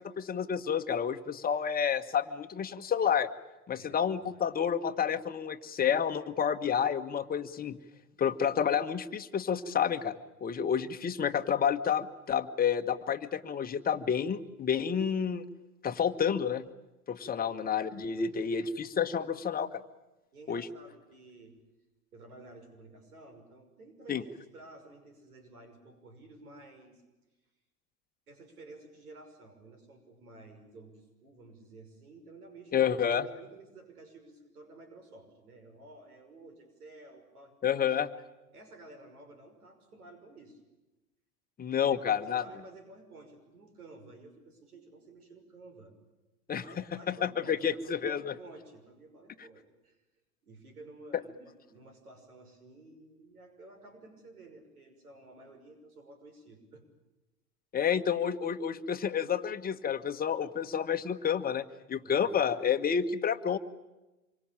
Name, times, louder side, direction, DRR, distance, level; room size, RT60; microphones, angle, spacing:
voice 1, 0.0-3.3 3.7-7.8 8.2-10.1 10.4-15.4 15.8-16.7 17.1-19.8 20.5-20.7 24.1-24.2 32.7-33.2 37.6-38.1 41.6-42.4 46.5-48.3 57.7-63.6, left 7 dB, 20° left, 7 dB, 1.4 m, -30 dB
voice 2, 18.1-18.7 20.3-21.5 22.1-27.0 28.3-37.9 38.5-40.6 41.8-45.9 46.5-50.0 50.4-56.8 62.0-62.4, right 2 dB, 80° right, 7 dB, 6.1 m, -53 dB
26.5 x 24.0 x 8.9 m, 1.1 s
hypercardioid pair, 100°, 44 cm